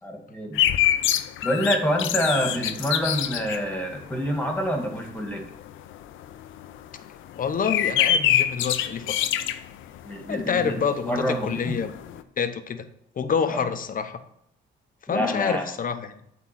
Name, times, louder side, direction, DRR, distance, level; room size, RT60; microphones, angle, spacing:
voice 1, 0.0-0.6 1.4-5.5 10.0-10.8 11.0-11.7 13.5-13.7 15.1-15.7, equal, 5° left, 2 dB, 2.0 m, -27 dB
Bird singing close in city garden, 0.5-10.6 11.0-11.1 11.3-12.2, left 11 dB, 85° left, 0.6 m, -25 dB
voice 2, 7.4-9.2 10.3-11.9 12.4-12.8 13.2-14.2 15.1-16.1, left 6 dB, 45° left, 9 dB, 0.8 m, -27 dB
8.3 x 3.8 x 6.0 m, 0.72 s
cardioid pair, 90°, 20 cm